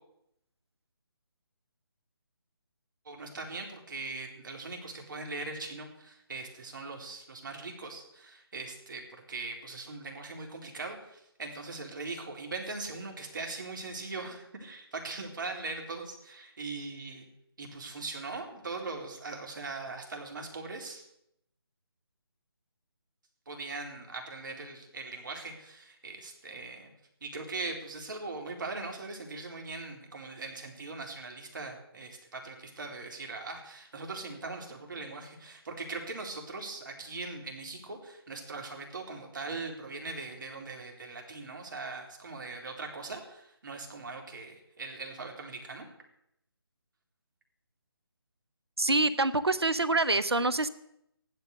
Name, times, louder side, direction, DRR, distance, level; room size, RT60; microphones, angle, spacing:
voice 1, 3.0-17.3 17.6-21.1 23.5-26.9 27.2-45.8, right 3 dB, 50° right, 2 dB, 4.0 m, -40 dB
voice 2, 48.8-50.7, right 2 dB, 80° right, 12 dB, 1.2 m, -26 dB
15.0 x 12.0 x 6.6 m, 0.79 s
figure-of-eight pair, 150°, 13 cm